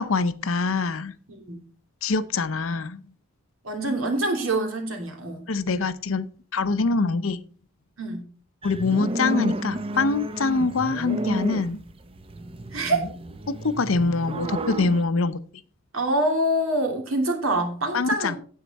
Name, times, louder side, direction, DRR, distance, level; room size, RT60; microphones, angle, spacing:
voice 1, 0.0-1.1 2.0-3.0 5.5-6.3 6.5-7.4 8.6-11.8 12.9-13.1 13.5-15.4 17.9-18.4, left 4 dB, 80° left, 13 dB, 0.7 m, -24 dB
voice 2, 1.3-1.7 3.6-5.5 8.0-8.2 12.7-13.1 15.9-18.4, right 1 dB, 90° right, 3 dB, 2.7 m, -25 dB
sound 1, 8.6-15.0, right 1 dB, 25° right, 0.6 m, -31 dB
9.4 x 8.1 x 4.1 m, 0.42 s
head